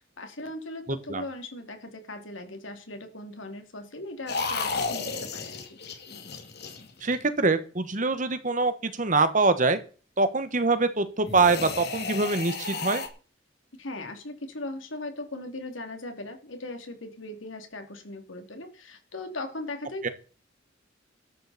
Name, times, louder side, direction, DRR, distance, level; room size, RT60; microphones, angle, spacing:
voice 1, 0.2-5.8 13.7-20.1, left 2 dB, 90° left, 5 dB, 2.8 m, -39 dB
voice 2, 0.9-1.2 7.0-9.8 10.2-13.0 20.0-20.1, right 3 dB, 40° right, 11 dB, 1.4 m, -24 dB
sound 1, 4.3-7.4 11.2-13.1, left 4 dB, 55° left, 2.3 m, -33 dB
13.0 x 13.0 x 4.3 m, 0.38 s
head